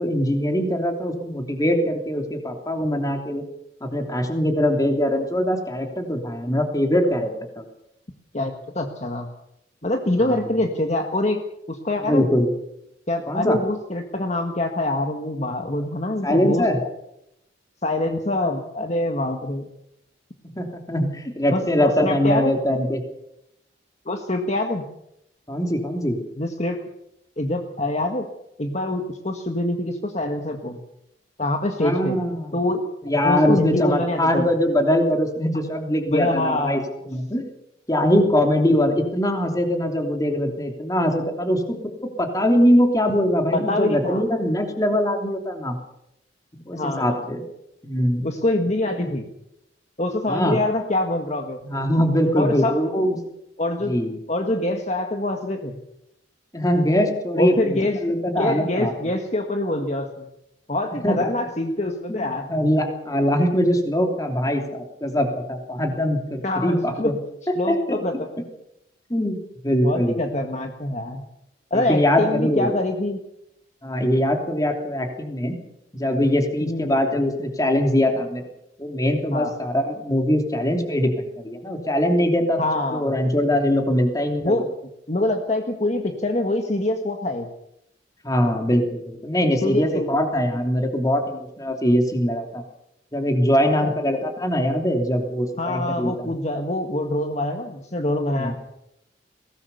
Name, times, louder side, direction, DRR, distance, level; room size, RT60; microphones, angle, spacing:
voice 1, 0.0-3.4 3.8-7.6 10.3-10.4 12.0-12.5 13.3-13.6 16.2-16.8 20.6-23.0 25.5-26.2 31.8-32.6 33.0-36.8 37.1-37.4 37.9-45.8 46.5-47.4 47.8-48.3 49.0-49.1 50.3-50.6 51.6-53.2 53.9-54.2 56.5-58.9 61.0-61.3 62.1-67.1 67.7-68.0 69.1-69.4 69.6-70.2 71.7-72.7 73.8-75.5 75.9-78.4 78.8-82.6 82.9-84.6 88.2-92.6 93.1-96.3 98.4-98.5, equal, 20° left, 4 dB, 3.1 m, -22 dB
voice 2, 8.3-9.3 9.8-11.4 11.7-12.3 13.1-16.7 17.8-19.6 21.5-22.5 24.0-24.9 26.4-26.8 27.4-28.3 28.6-30.8 31.4-32.2 32.5-32.9 33.2-34.5 36.0-36.9 43.5-44.2 46.7-47.2 48.2-49.2 50.0-51.6 52.3-52.8 53.6-54.0 54.3-55.8 57.4-60.3 60.7-62.5 66.4-67.2 67.6-68.1 69.8-71.2 71.7-73.2 76.6-76.9 79.3-79.5 82.6-83.1 84.4-84.7 85.1-87.5 89.6-90.1 93.6-93.9 95.6-98.5, left 1 dB, 35° left, 4 dB, 1.7 m, -25 dB
22.0 x 18.0 x 6.9 m, 0.82 s
head